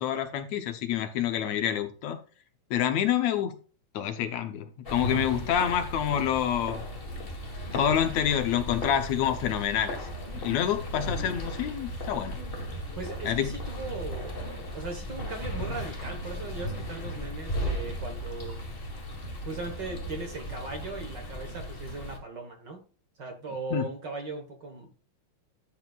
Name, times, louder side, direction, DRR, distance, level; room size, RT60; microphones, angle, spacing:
voice 1, 0.0-2.2 2.7-3.6 3.9-6.8 7.7-10.0 10.3-12.4 13.3-13.5 23.7-23.8, left 9 dB, 70° left, 8 dB, 2.1 m, -27 dB
sound 1, 4.8-22.2, equal, 25° left, 1.2 m, -36 dB
sound 2, 8.3-8.4 8.7-9.6 9.9-11.6 11.9-12.8 13.1-14.9 15.2-16.1 16.4-18.1 18.4-19.3 19.6-20.8, right 3 dB, 30° right, 3.6 m, -44 dB
voice 2, 12.9-18.6 19.4-22.8 23.2-25.0, right 3 dB, 45° right, 4 dB, 1.6 m, -38 dB
12.0 x 7.3 x 2.4 m, 0.37 s
omnidirectional pair, 3.4 m